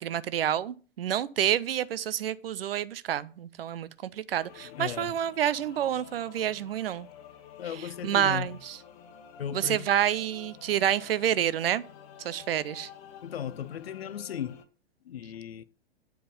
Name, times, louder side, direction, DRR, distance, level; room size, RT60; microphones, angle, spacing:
voice 1, 0.0-7.1 7.8-8.8 9.5-11.8 12.2-12.9, right 10 dB, 65° right, 0.6 m, -28 dB
sound 1, 4.3-14.6, left 8 dB, 35° left, 1.1 m, -50 dB
voice 2, 4.6-5.1 7.6-8.6 9.4-9.9 13.2-14.6 15.0-15.6, left 9 dB, 70° left, 0.7 m, -36 dB
8.0 x 4.7 x 5.3 m
figure-of-eight pair, 105°, 31 cm